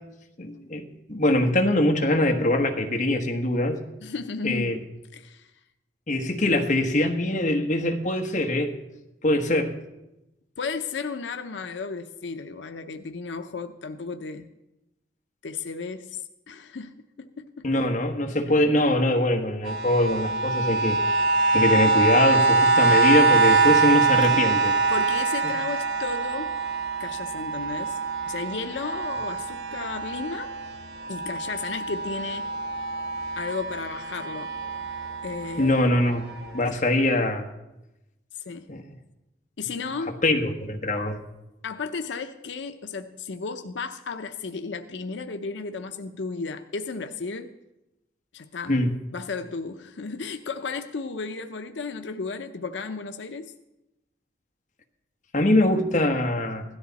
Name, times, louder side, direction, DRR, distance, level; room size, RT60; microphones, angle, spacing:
voice 1, 0.4-3.8 4.4-4.8 6.1-8.7 9.2-9.7 17.6-21.0 21.5-24.7 35.6-36.2 36.5-37.5 38.7-38.8 40.2-41.2 48.7-48.9 55.3-56.6, left 1 dB, 45° left, 3 dB, 1.4 m, -23 dB
voice 2, 4.0-4.7 5.1-5.5 10.6-14.5 15.4-16.2 16.5-17.7 24.9-26.5 27.0-28.0 28.2-30.5 31.1-32.5 33.4-34.5 35.2-35.7 38.4-38.7 39.6-40.2 41.6-47.5 48.3-48.8 49.1-53.5, left 4 dB, 90° left, 7 dB, 0.6 m, -34 dB
sound 1, 19.7-30.7 31.0-35.6 36.3-36.4, right 4 dB, 65° right, 1.2 m, -24 dB
16.5 x 13.0 x 4.1 m, 0.95 s
head